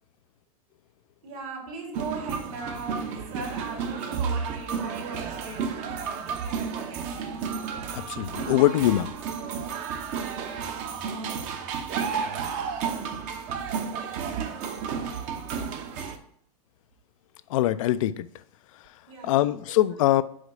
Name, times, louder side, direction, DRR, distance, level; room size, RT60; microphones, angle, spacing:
voice 1, 1.2-7.1 19.1-19.6 20.0-20.1, right 4 dB, 70° right, 2.2 m, -36 dB
sound 1, 1.9-16.2, right 6 dB, 45° right, 0.8 m, -32 dB
voice 2, 7.9-9.1 17.5-18.3 19.2-20.2, left 14 dB, 65° left, 0.4 m, -23 dB
5.0 x 3.9 x 5.4 m
hypercardioid pair, 115°, 18 cm